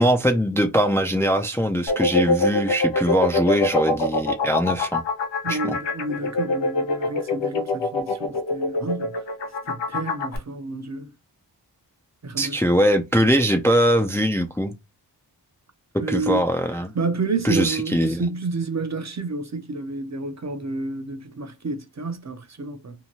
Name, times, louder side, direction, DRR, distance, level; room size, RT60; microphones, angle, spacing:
voice 1, 0.0-5.0 5.5-5.8 12.4-14.7 16.1-17.0 17.4-18.3, equal, 5° left, 0.4 m, -21 dB
sound 1, 1.9-10.4, left 2 dB, 85° left, 0.7 m, -24 dB
voice 2, 5.4-9.2 9.6-11.1 12.2-12.8 16.0-16.4 16.9-22.9, right 3 dB, 40° right, 0.7 m, -30 dB
2.8 x 2.2 x 2.8 m
cardioid pair, 50°, 42 cm